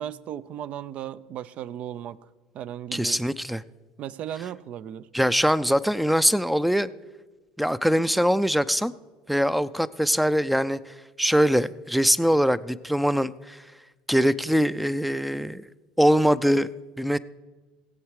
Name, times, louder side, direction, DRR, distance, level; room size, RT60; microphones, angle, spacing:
voice 1, 0.0-2.2 2.5-3.2 4.0-5.1, right 10 dB, 55° right, 16 dB, 0.6 m, -36 dB
voice 2, 2.9-3.6 5.1-6.9 7.6-8.9 9.3-13.6 14.1-15.7 16.0-16.7 17.0-17.2, equal, ahead, 15 dB, 0.5 m, -22 dB
19.5 x 8.0 x 4.9 m, 1.3 s
hypercardioid pair, 80°, 3 cm